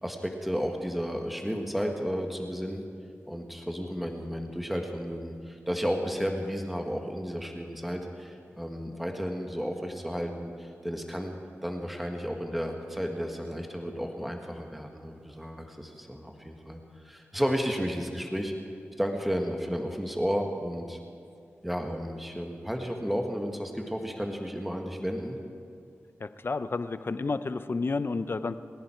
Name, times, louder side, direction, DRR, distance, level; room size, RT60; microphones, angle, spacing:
voice 1, 0.0-2.8 3.3-11.3 11.6-18.5 19.0-21.0 21.6-25.4, equal, ahead, 2 dB, 1.7 m, -32 dB
voice 2, 26.2-28.6, left 3 dB, 50° left, 12 dB, 0.7 m, -31 dB
29.0 x 10.5 x 4.5 m, 2.4 s
cardioid pair, 50°, 5 cm